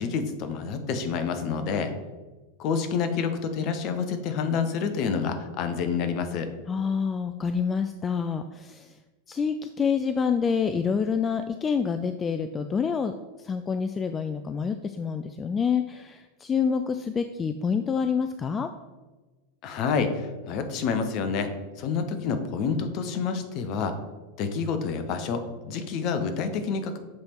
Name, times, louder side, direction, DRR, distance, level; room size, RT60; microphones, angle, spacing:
voice 1, 0.0-1.9 2.6-6.5 19.6-21.5 21.8-23.9 24.4-27.0, left 5 dB, 45° left, 8 dB, 0.8 m, -28 dB
voice 2, 6.7-9.0 9.3-18.7, left 6 dB, 25° left, 8 dB, 0.3 m, -27 dB
7.7 x 3.5 x 4.4 m, 1.2 s
figure-of-eight pair, 90°, 0 cm